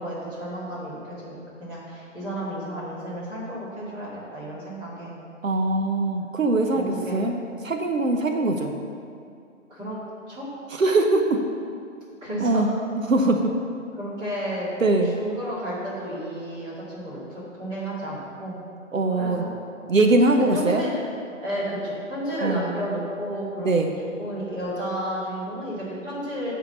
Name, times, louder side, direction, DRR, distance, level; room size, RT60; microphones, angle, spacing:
voice 1, 0.0-5.1 6.2-6.3 6.7-7.2 9.7-10.0 10.3-10.5 12.2-12.6 14.0-14.7 15.0-18.6 19.1-19.6 20.5-21.0 21.4-23.7 24.2-26.5, equal, 15° right, -9 dB, 2.5 m, -32 dB
voice 2, 5.4-7.4 7.6-8.7 10.7-11.4 12.4-13.4 14.8-15.1 18.9-19.5 19.9-20.8 22.4-22.6 23.6-23.9, right 2 dB, 80° right, 3 dB, 1.0 m, -22 dB
8.6 x 5.0 x 7.1 m, 2.4 s
figure-of-eight pair, 150°, 39 cm